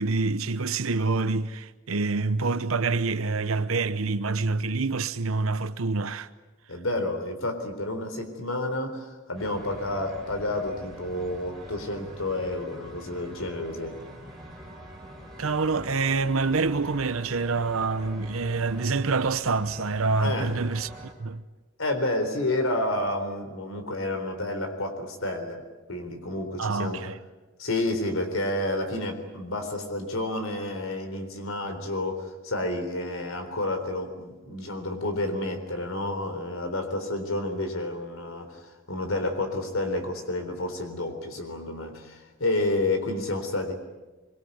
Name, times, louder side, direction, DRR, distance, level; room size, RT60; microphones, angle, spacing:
voice 1, 0.0-6.3 15.4-20.9 21.2-21.4 26.6-27.2, right 3 dB, 90° right, 0.9 m, -26 dB
voice 2, 6.7-14.0 20.2-20.6 21.8-27.0 27.6-43.7, left 1 dB, 85° left, 3.9 m, -30 dB
sound 1, 9.3-21.1, right 1 dB, ahead, 5.2 m, -44 dB
24.5 x 23.5 x 9.5 m
head